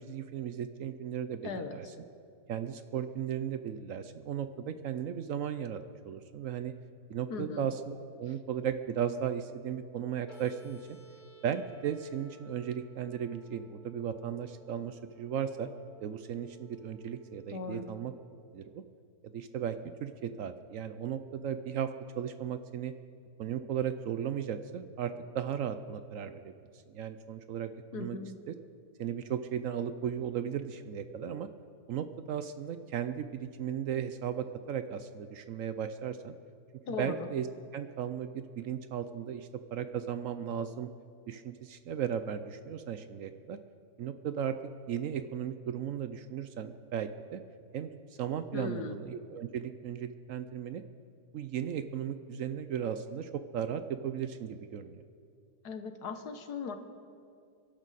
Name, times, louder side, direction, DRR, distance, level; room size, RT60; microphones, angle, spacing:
voice 1, 0.0-1.9 2.5-6.7 7.1-11.0 11.4-15.7 16.0-18.1 18.5-18.8 19.3-21.9 22.2-22.9 23.4-26.5 26.9-28.2 28.5-28.6 29.0-31.5 31.9-36.3 36.9-37.5 37.7-40.9 41.3-43.6 44.0-44.5 44.9-47.4 47.7-50.8 51.3-55.0, right 8 dB, 65° right, 10 dB, 0.9 m, -36 dB
voice 2, 1.4-1.8 7.3-7.7 17.5-17.9 27.9-28.3 36.9-37.3 48.5-49.0 55.6-56.8, left 5 dB, 80° left, 7 dB, 1.6 m, -38 dB
sound 1, 10.3-18.3, right 5 dB, 65° left, 3.1 m, -57 dB
29.0 x 11.5 x 4.1 m, 2.4 s
omnidirectional pair, 1.7 m